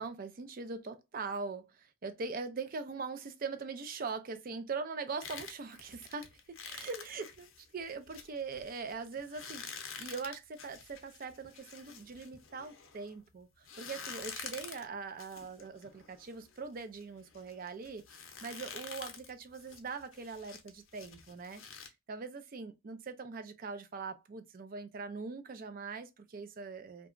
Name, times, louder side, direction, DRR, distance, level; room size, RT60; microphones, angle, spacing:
voice 1, 0.0-21.6 22.1-27.1, right 4 dB, 45° right, 0.4 m, -42 dB
sound 1, 5.2-13.1 13.6-21.9, left 6 dB, 70° left, 0.6 m, -48 dB
2.8 x 2.2 x 2.4 m
head